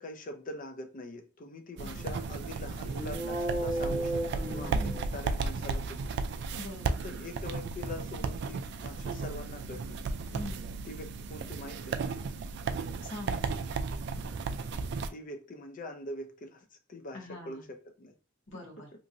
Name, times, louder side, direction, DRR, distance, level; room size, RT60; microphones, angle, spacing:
voice 1, 0.0-6.1 6.9-10.0 10.8-12.0 15.1-18.1, left 1 dB, 40° left, 0.5 m, -43 dB
voice 2, 1.8-2.2 4.7-5.1 6.6-7.0 10.3-10.8 13.0-13.8 17.1-17.7 18.5-18.9, left 1 dB, 70° left, 1.0 m, -44 dB
sound 1, 1.8-15.1, right 4 dB, 60° right, 0.3 m, -35 dB
sound 2, 2.8-5.4, right 1 dB, 35° right, 0.8 m, -34 dB
2.9 x 2.5 x 2.7 m
head